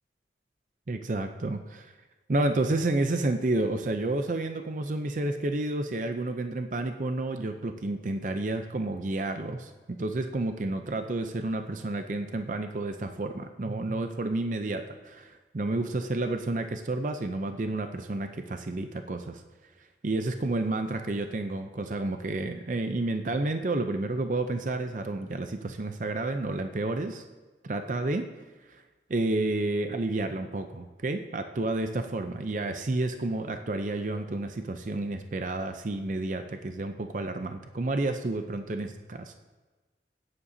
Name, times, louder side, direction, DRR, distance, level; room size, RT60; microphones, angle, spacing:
voice 1, 0.9-1.9 2.3-19.4 20.0-27.2 27.6-28.3 28.7-28.8 29.1-39.3, right 2 dB, 45° right, 7 dB, 0.5 m, -30 dB
16.0 x 9.9 x 2.7 m, 1.2 s
head